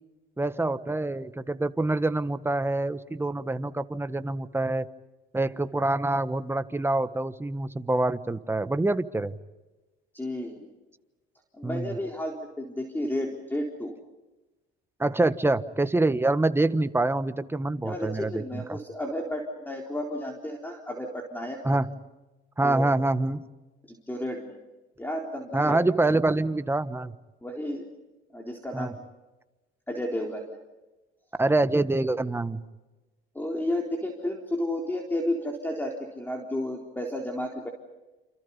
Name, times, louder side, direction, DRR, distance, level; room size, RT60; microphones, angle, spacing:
voice 1, 0.4-4.9 5.3-9.3 11.6-11.9 15.0-18.8 21.6-21.9 22.6-23.4 25.5-27.1 28.7-28.9 31.4-32.6, right 2 dB, 10° right, 12 dB, 1.4 m, -26 dB
voice 2, 10.1-10.7 11.5-13.9 17.8-21.6 22.6-22.9 23.9-24.6 25.0-25.8 27.4-27.9 28.3-29.0 29.9-30.4 33.3-37.7, left 1 dB, 10° left, 1 dB, 4.0 m, -32 dB
29.0 x 28.5 x 5.5 m, 1.1 s
cardioid pair, 110°, 21 cm